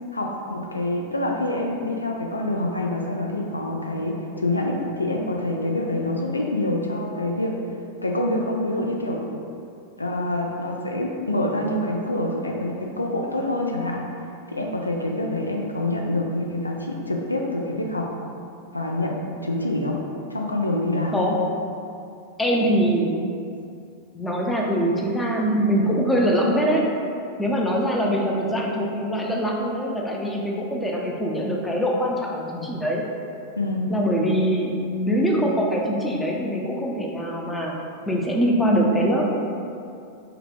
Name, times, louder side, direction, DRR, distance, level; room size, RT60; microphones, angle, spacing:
voice 1, 0.1-7.6 8.0-9.3 10.0-14.0 14.5-18.1 18.7-20.0 20.3-21.2 33.5-33.9, left 1 dB, 80° left, 0 dB, 0.4 m, -26 dB
voice 2, 22.4-23.2 24.1-26.9 27.4-33.0 33.9-37.7 38.1-39.3, equal, 10° left, -1 dB, 0.6 m, -23 dB
5.6 x 2.3 x 3.3 m, 2.5 s
figure-of-eight pair, 90°, 0 cm